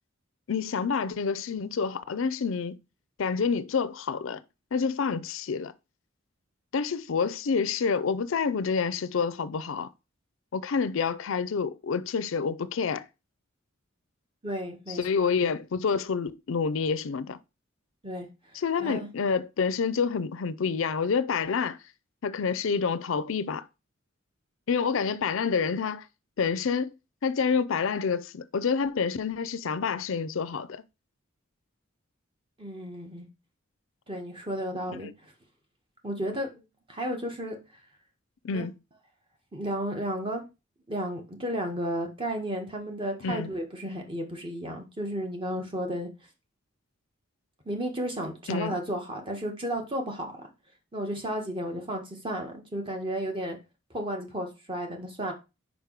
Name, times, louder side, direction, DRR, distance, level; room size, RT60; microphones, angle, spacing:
voice 1, 0.5-2.8 3.2-4.4 4.7-5.7 6.7-9.9 10.5-13.0 14.9-17.4 18.5-21.8 22.2-23.6 24.7-26.1 26.4-26.9 27.2-30.8 35.0-35.1 38.4-38.7 43.2-43.5 48.5-48.8, left 5 dB, 70° left, 0.5 m, -28 dB
voice 2, 14.4-15.0 18.0-18.3 18.8-19.1 32.6-33.3 34.1-35.3 36.0-36.6 36.9-37.6 38.5-38.6 39.5-40.4 40.9-46.1 47.6-50.3 50.9-53.6 53.9-55.3, right 1 dB, 25° right, 1.7 m, -33 dB
5.1 x 5.0 x 4.8 m
head